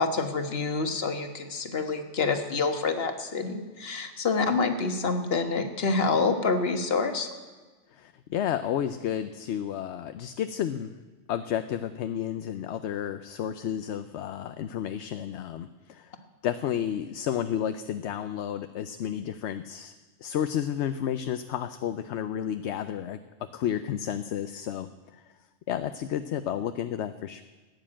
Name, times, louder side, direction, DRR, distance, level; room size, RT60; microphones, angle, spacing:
voice 1, 0.0-7.3, left 4 dB, 50° left, 7 dB, 1.5 m, -27 dB
voice 2, 7.9-10.9 11.3-16.1 16.4-19.9 20.2-23.2 23.5-25.2 25.7-27.4, left 9 dB, 70° left, 10 dB, 0.9 m, -31 dB
15.5 x 9.7 x 8.7 m, 1.3 s
omnidirectional pair, 1.3 m